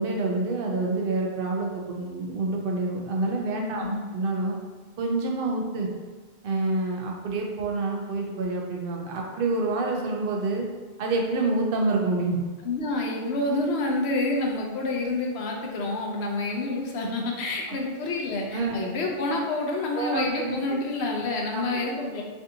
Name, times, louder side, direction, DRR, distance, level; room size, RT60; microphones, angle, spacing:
voice 1, 0.0-3.8 4.1-4.6 5.0-5.9 6.4-10.7 11.0-12.4 17.7-17.8 18.5-18.8 19.9-20.6 21.5-21.8, right 3 dB, 65° right, 0 dB, 0.8 m, -27 dB
voice 2, 12.6-22.2, left 2 dB, 90° left, 0 dB, 0.9 m, -28 dB
3.4 x 2.5 x 2.7 m, 1.4 s
omnidirectional pair, 1.1 m